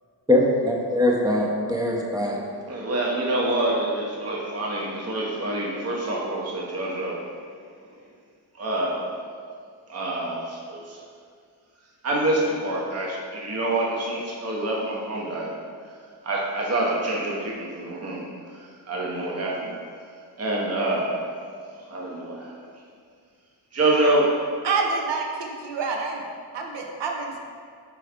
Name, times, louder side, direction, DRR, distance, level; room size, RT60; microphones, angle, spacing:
voice 1, 0.3-2.4, left 1 dB, 10° right, -1 dB, 0.6 m, -22 dB
voice 2, 2.7-7.2 8.6-9.1 9.9-11.0 12.0-15.5 16.2-18.2 18.9-19.7 20.4-21.2 21.9-22.5 23.7-24.3, right 1 dB, 35° right, -3 dB, 0.9 m, -26 dB
voice 3, 24.6-26.2 26.5-27.5, right 4 dB, 75° right, 1 dB, 0.9 m, -27 dB
4.7 x 4.5 x 5.0 m, 2.1 s
wide cardioid pair, 165°, 42 cm